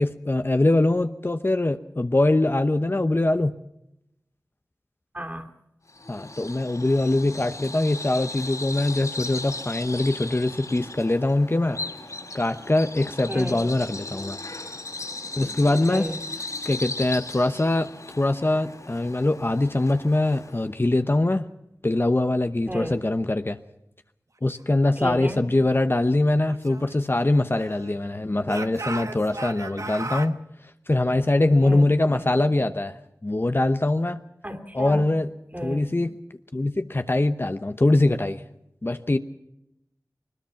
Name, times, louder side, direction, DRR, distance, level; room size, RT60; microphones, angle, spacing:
voice 1, 0.0-3.5 6.1-11.8 12.3-14.4 15.4-16.1 16.6-17.9 18.2-21.5 21.8-23.6 24.4-30.4 30.9-33.0 33.2-34.2 34.7-35.3 35.6-36.1 36.5-38.4 38.8-39.2, left 2 dB, 35° left, 9 dB, 0.9 m, -23 dB
voice 2, 5.1-5.5 13.3-13.7 15.9-16.2 22.7-23.0 25.0-25.4 31.6-31.8 32.1-32.3 34.4-35.1 35.5-35.9, equal, 25° right, 5 dB, 2.8 m, -33 dB
Bird vocalization bird call bird song, 5.9-20.7, left 2 dB, 60° left, 4.4 m, -37 dB
Speech / Shout, 26.5-28.0 28.4-30.3, right 2 dB, 55° right, 1.1 m, -36 dB
22.5 x 20.5 x 5.8 m, 0.86 s
wide cardioid pair, 45°, 6 cm